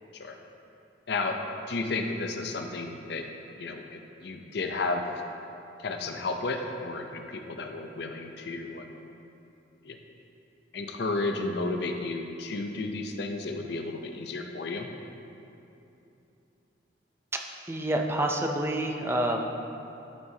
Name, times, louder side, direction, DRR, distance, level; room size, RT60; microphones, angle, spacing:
voice 1, 1.1-1.4 1.7-3.3 3.6-5.0 5.8-8.9 9.8-10.0 10.7-14.9, left 3 dB, 60° left, 4 dB, 0.6 m, -32 dB
voice 2, 17.7-19.5, right 1 dB, 15° right, 2 dB, 0.4 m, -28 dB
12.5 x 6.0 x 2.8 m, 2.8 s
head